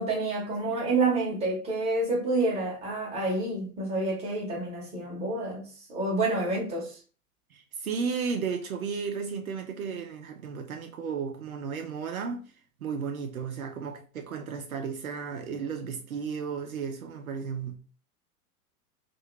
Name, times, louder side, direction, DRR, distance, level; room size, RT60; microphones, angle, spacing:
voice 1, 0.0-7.0, right 2 dB, 15° right, 1.0 m, -28 dB
voice 2, 7.5-12.5 12.8-17.8, right 6 dB, 65° right, 0.6 m, -34 dB
2.8 x 2.6 x 3.0 m
figure-of-eight pair, 100°, 46 cm